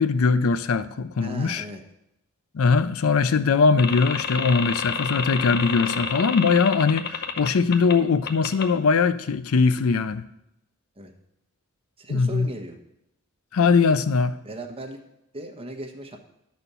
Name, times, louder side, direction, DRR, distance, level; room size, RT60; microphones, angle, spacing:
voice 1, 0.0-1.6 2.5-10.3 12.1-12.5 13.5-14.3, left 5 dB, 70° left, 14 dB, 0.5 m, -21 dB
voice 2, 1.2-1.8 5.8-5.9 11.0-11.1 12.0-12.8 14.4-15.0 15.3-16.2, right 1 dB, 25° right, 3 dB, 1.1 m, -37 dB
sound 1, 3.8-7.9 8.3-8.6, left 6 dB, 45° left, 0.8 m, -29 dB
11.0 x 4.3 x 6.8 m, 0.83 s
head